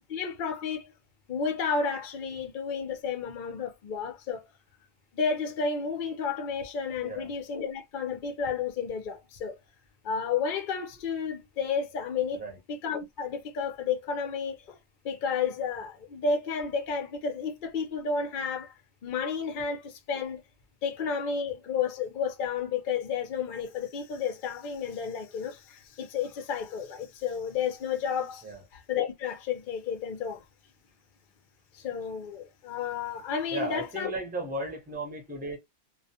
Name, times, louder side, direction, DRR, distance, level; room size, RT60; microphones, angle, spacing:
voice 1, 0.1-0.9 1.3-4.4 5.1-9.6 10.0-12.4 12.7-14.8 15.0-18.7 19.0-20.4 20.8-28.4 28.7-30.4 31.7-34.1, left 6 dB, 55° left, 0.6 m, -31 dB
voice 2, 7.0-7.3 12.3-12.6 28.4-28.6 33.5-35.6, right 2 dB, 10° right, 0.6 m, -35 dB
2.3 x 2.1 x 2.7 m
omnidirectional pair, 1.4 m